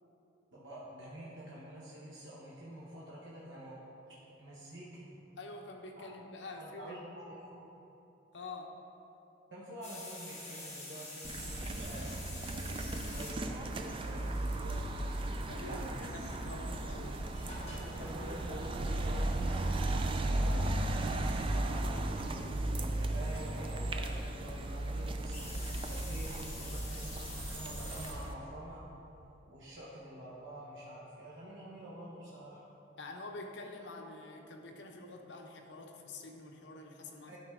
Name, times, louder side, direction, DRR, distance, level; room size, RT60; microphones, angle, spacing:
voice 1, 0.5-3.8 4.4-5.1 6.0-6.1 6.6-7.6 9.5-16.3 17.9-22.2 22.7-28.8 29.4-32.6 37.3-37.4, right 1 dB, 70° right, -6 dB, 1.1 m, -47 dB
voice 2, 5.4-7.0 8.3-8.8 15.3-17.2 33.0-37.3, left 2 dB, 70° left, 3 dB, 0.8 m, -47 dB
sound 1, 9.8-23.4 25.3-28.1, left 2 dB, 35° left, 1.7 m, -50 dB
sound 2, 11.2-28.3, right 1 dB, 30° right, 0.4 m, -35 dB
11.5 x 4.9 x 3.6 m, 2.9 s
head